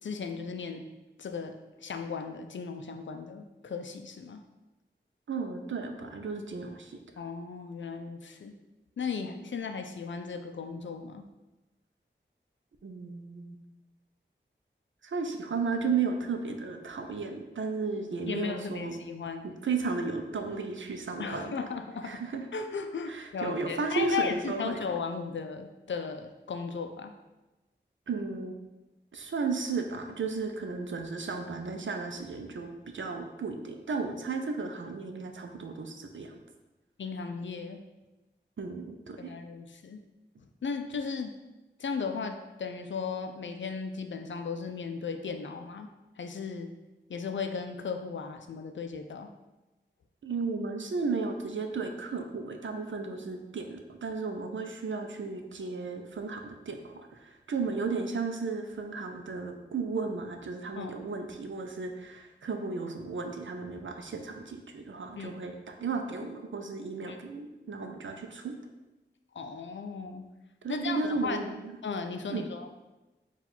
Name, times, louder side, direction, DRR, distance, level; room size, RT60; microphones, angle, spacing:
voice 1, 0.0-0.8 1.2-4.4 7.2-8.5 9.0-11.2 18.3-19.5 21.2-22.2 22.5-27.1 37.0-37.8 39.2-40.0 40.6-41.3 41.8-45.9 46.2-46.7 47.1-49.3 60.8-61.0 65.2-65.4 67.1-67.2 69.3-70.2 70.7-71.4 71.8-72.7, left 5 dB, 70° left, 6 dB, 0.4 m, -36 dB
voice 2, 5.3-7.0 12.8-13.6 15.0-19.0 19.4-21.7 22.0-22.5 23.1-24.8 28.1-28.6 29.1-36.3 38.6-39.3 50.2-68.5 70.6-71.7 72.3-72.5, right 4 dB, 75° right, 5 dB, 0.5 m, -34 dB
4.3 x 2.4 x 4.0 m, 1.1 s
wide cardioid pair, 55°, 20 cm